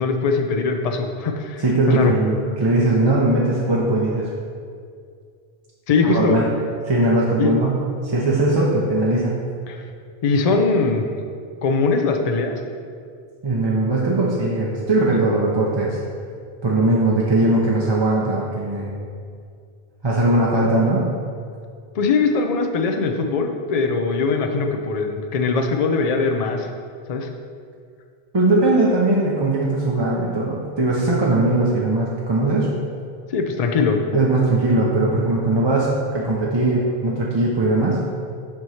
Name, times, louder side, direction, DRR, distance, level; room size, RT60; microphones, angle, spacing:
voice 1, 0.0-2.1 5.9-6.4 7.4-7.5 9.7-9.8 10.2-11.0 11.6-12.5 21.9-26.7 27.1-27.3 33.3-34.0, left 4 dB, 50° left, 5 dB, 0.5 m, -21 dB
voice 2, 1.6-4.3 6.0-6.6 6.9-9.4 13.4-16.0 16.6-18.9 20.0-21.1 28.3-32.8 34.1-38.0, right 2 dB, 30° right, -4 dB, 0.6 m, -20 dB
7.7 x 3.1 x 5.6 m, 2.2 s
omnidirectional pair, 1.0 m